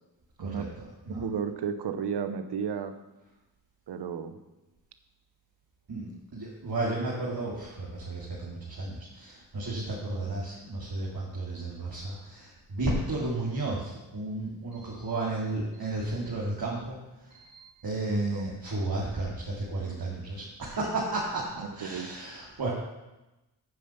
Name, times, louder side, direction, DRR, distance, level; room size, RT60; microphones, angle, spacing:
voice 1, 0.4-0.7 1.1-2.9 3.9-4.4 18.1-18.6 21.6-22.1, right 7 dB, 80° right, 10 dB, 0.9 m, -33 dB
voice 2, 5.9-17.0 17.3-22.7, right 2 dB, 60° right, -5 dB, 2.3 m, -33 dB
9.3 x 5.2 x 7.0 m, 1.0 s
cardioid pair, 45°, 40 cm